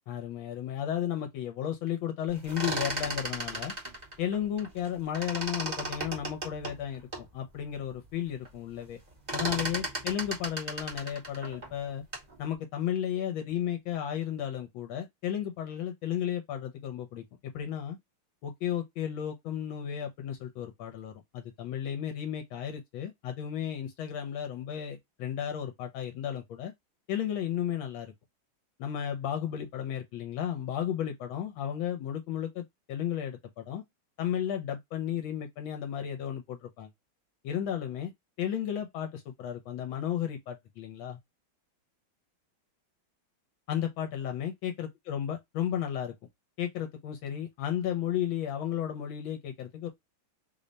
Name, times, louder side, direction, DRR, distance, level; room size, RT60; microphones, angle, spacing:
voice 1, 0.1-3.7 4.2-9.0 9.3-12.0 12.4-17.2 17.5-18.0 18.4-26.7 27.1-28.1 28.8-33.8 34.2-36.9 37.4-38.1 38.4-41.2 43.7-46.1 46.6-49.9, left 10 dB, 80° left, 1.4 m, -33 dB
sound 1, 2.3-4.9 5.1-7.3 7.8-7.9 8.1-8.5 8.8-12.3, right 2 dB, 35° right, 0.7 m, -35 dB
3.4 x 2.1 x 3.8 m
omnidirectional pair, 2.2 m